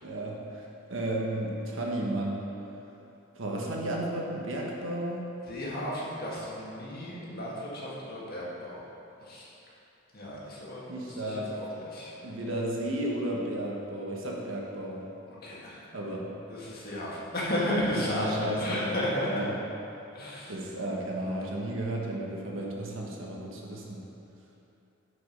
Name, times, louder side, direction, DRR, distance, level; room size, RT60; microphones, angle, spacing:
voice 1, 0.0-2.5 3.3-5.3 10.9-11.6 12.2-15.1 15.9-16.3 17.9-18.9 19.2-19.5 20.5-24.0, right 1 dB, 70° right, -2 dB, 1.3 m, -33 dB
voice 2, 5.5-8.8 9.3-9.5 10.1-10.9 11.3-12.1 15.3-15.8 16.5-18.3 18.6-19.5 20.1-20.5, left 1 dB, 50° left, -6 dB, 1.8 m, -33 dB
8.7 x 5.3 x 5.3 m, 2.9 s
head